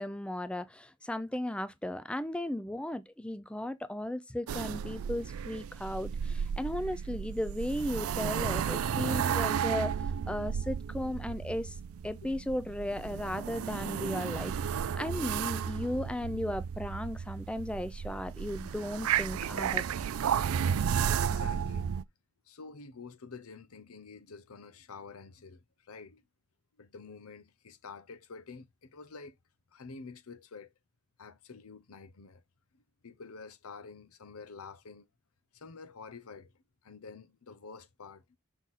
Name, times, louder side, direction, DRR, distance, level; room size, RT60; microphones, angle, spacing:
voice 1, 0.0-9.9 10.3-11.8 12.0-19.9, left 1 dB, 5° left, 0.4 m, -36 dB
sound 1, 4.5-22.0, right 8 dB, 80° right, 0.4 m, -33 dB
voice 2, 21.0-21.9 22.5-26.2 26.8-29.4 29.7-30.7 31.2-32.4 32.7-35.1 35.5-36.5 36.8-38.2, left 4 dB, 90° left, 0.8 m, -48 dB
6.2 x 3.9 x 4.0 m
head